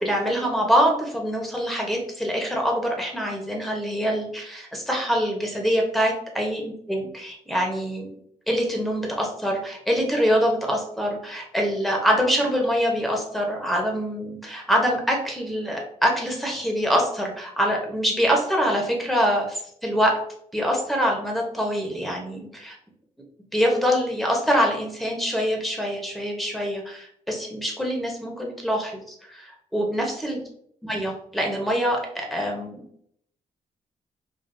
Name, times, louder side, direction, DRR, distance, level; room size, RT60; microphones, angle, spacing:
voice 1, 0.0-8.2 8.5-20.2 20.5-22.8 23.5-30.4 30.8-32.9, equal, ahead, 0 dB, 0.9 m, -24 dB
5.1 x 2.4 x 2.6 m, 0.67 s
cardioid pair, 140°, 13 cm